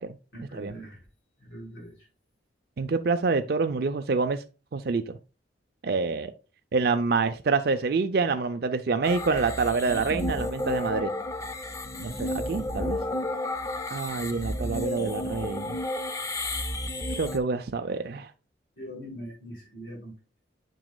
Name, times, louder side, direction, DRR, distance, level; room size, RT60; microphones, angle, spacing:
voice 1, 0.3-1.0 1.4-1.9 18.8-20.1, equal, 75° left, 4.3 m, -41 dB
voice 2, 2.8-4.4 4.7-5.2 5.8-6.3 6.7-11.1 12.0-13.0 13.9-15.8 17.1-18.3, right 4 dB, 55° right, 0.4 m, -27 dB
sound 1, 9.0-17.4, left 1 dB, 15° left, 0.5 m, -32 dB
9.1 x 6.1 x 2.2 m
head